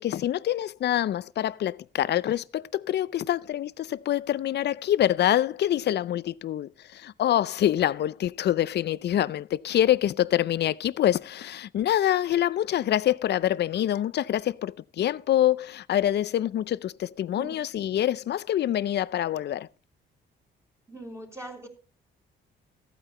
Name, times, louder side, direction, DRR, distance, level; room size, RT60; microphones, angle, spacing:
voice 1, 0.0-19.7, left 12 dB, 60° left, 0.6 m, -26 dB
voice 2, 20.9-21.7, right 1 dB, 15° right, 3.4 m, -41 dB
14.5 x 9.0 x 4.2 m
cardioid pair, 90°, 20 cm